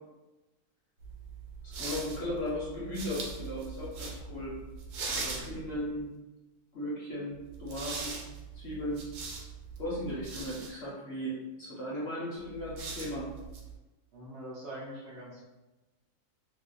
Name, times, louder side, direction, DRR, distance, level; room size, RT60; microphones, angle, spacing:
sound 1, 1.0-6.0 7.5-10.7 12.5-13.8, right 4 dB, 80° right, 1.1 m, -41 dB
voice 1, 1.8-4.6 5.1-6.1 6.7-8.2 8.5-9.0 9.8-13.3, left 1 dB, 55° left, -6 dB, 0.8 m, -36 dB
voice 2, 5.0-5.4 14.1-15.5, right 1 dB, 60° right, -6 dB, 0.7 m, -44 dB
2.7 x 2.2 x 3.7 m, 1.1 s
omnidirectional pair, 1.6 m